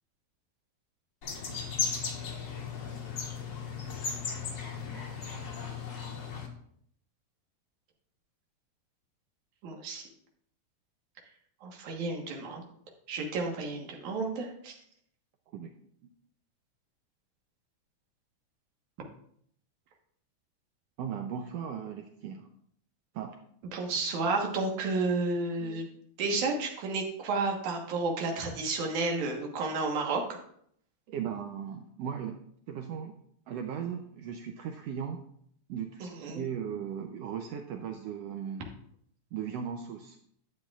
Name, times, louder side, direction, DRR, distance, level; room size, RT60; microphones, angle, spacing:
sound 1, 1.2-6.5, left 5 dB, 80° left, 0.8 m, -36 dB
voice 1, 9.6-10.0 11.6-12.6 13.1-14.7 23.7-25.9 26.2-30.4 36.0-36.4, right 3 dB, 70° right, 1 dB, 2.7 m, -31 dB
voice 2, 21.0-22.5 23.1-23.3 25.6-25.9 26.2-26.5 31.1-32.4 32.7-33.1 33.5-35.2 35.7-38.6 39.3-40.2, right 8 dB, 85° right, 4 dB, 1.4 m, -37 dB
11.5 x 7.8 x 2.4 m, 0.66 s
omnidirectional pair, 3.6 m